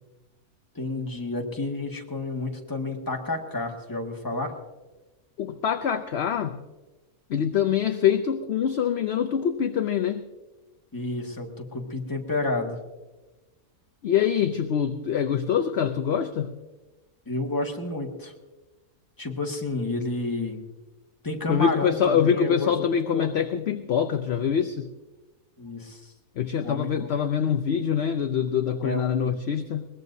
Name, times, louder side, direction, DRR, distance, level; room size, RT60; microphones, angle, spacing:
voice 1, 0.8-4.5 10.9-12.8 17.3-18.3 19.2-20.6 21.2-23.3 25.6-26.1 26.6-26.9 28.8-29.4, left 2 dB, 15° left, 0 dB, 1.7 m, -30 dB
voice 2, 5.4-6.6 7.3-10.2 14.0-16.5 21.5-24.9 26.4-29.9, left 8 dB, 55° left, 7 dB, 0.8 m, -24 dB
22.0 x 19.5 x 2.7 m, 1.2 s
omnidirectional pair, 1.5 m